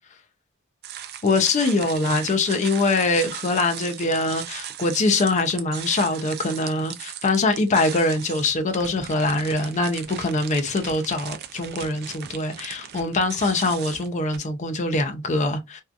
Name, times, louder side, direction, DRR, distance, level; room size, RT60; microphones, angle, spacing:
sound 1, 0.8-14.4, right 10 dB, 50° right, 0.3 m, -38 dB
voice 1, 1.2-15.8, left 2 dB, 35° left, 0.4 m, -23 dB
2.6 x 2.3 x 2.3 m
head